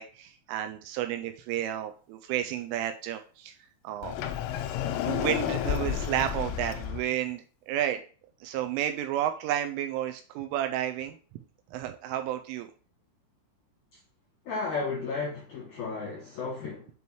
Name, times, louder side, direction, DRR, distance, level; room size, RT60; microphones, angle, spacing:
voice 1, 0.0-3.5 3.8-4.2 5.0-8.0 8.4-11.2 11.7-12.7, right 11 dB, 85° right, 2.9 m, -31 dB
Sliding door, 4.0-7.0, left 10 dB, 90° left, 3.4 m, -31 dB
voice 2, 14.4-16.9, left 4 dB, 65° left, 1.9 m, -33 dB
7.8 x 5.4 x 3.0 m
omnidirectional pair, 5.8 m